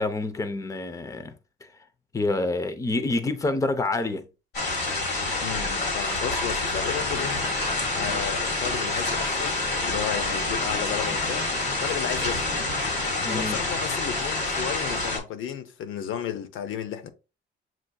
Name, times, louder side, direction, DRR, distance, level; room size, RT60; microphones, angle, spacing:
voice 1, 0.0-1.3 1.6-1.7 2.1-4.3 13.2-13.6, left 2 dB, 15° left, 0.5 m, -27 dB
sound 1, 4.5-15.2, left 2 dB, 60° left, 1.7 m, -27 dB
voice 2, 5.4-7.4 7.9-9.6 9.8-12.5 13.3-17.1, left 9 dB, 85° left, 0.7 m, -33 dB
7.4 x 2.6 x 2.2 m
cardioid pair, 125°, 20 cm